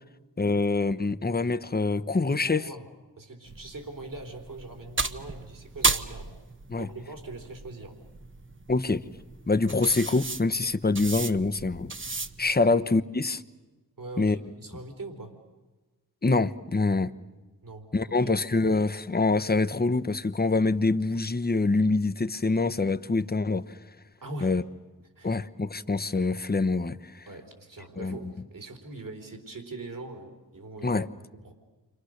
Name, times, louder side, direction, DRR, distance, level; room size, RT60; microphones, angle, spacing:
voice 1, 0.4-2.7 6.7-6.9 8.7-9.1 9.5-11.9 12.4-13.4 14.2-14.3 16.2-17.1 17.9-23.8 24.4-24.6 25.2-27.3 28.0-28.3 30.8-31.1, left 3 dB, 25° left, 10 dB, 1.0 m, -25 dB
voice 2, 2.2-2.9 3.2-6.3 6.8-8.0 14.0-15.4 17.6-18.3 24.2-24.6 25.2-25.3 27.3-31.0 31.3-31.5, right 2 dB, 60° right, 4 dB, 4.1 m, -42 dB
sound 1, 3.5-12.6, right 3 dB, 30° right, 1.1 m, -34 dB
29.0 x 25.5 x 6.6 m, 1.2 s
cardioid pair, 45°, 38 cm